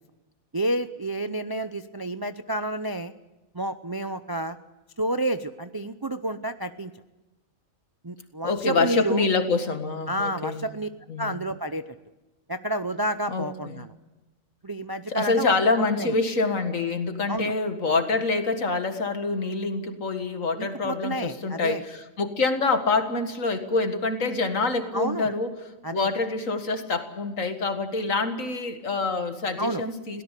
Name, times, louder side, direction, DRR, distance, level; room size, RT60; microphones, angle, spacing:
voice 1, 0.5-3.1 3.5-4.6 5.0-6.9 8.0-9.2 10.1-10.9 11.2-11.8 12.5-13.9 14.6-15.5 16.0-16.1 17.3-17.5 20.6-21.8 24.9-25.3 25.8-26.1 29.6-29.8, right 1 dB, 25° right, 10 dB, 0.5 m, -29 dB
voice 2, 8.4-10.7 11.1-11.4 13.3-13.9 15.1-30.2, left 3 dB, 75° left, 7 dB, 2.2 m, -26 dB
23.0 x 17.5 x 8.3 m, 1.1 s
omnidirectional pair, 1.4 m